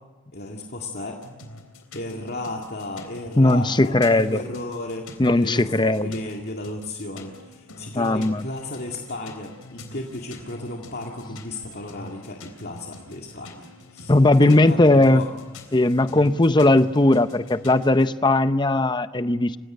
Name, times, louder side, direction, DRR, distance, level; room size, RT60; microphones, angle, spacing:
voice 1, 0.3-1.2 1.9-14.1 14.4-15.3, left 2 dB, 45° left, 0 dB, 2.1 m, -34 dB
sound 1, 1.1-18.1, left 2 dB, 75° left, 3.6 m, -45 dB
voice 2, 3.4-4.4 5.2-6.1 7.9-8.5 14.1-15.2 15.7-19.6, left 2 dB, 20° left, 12 dB, 0.7 m, -18 dB
28.0 x 16.5 x 7.9 m, 1.3 s
head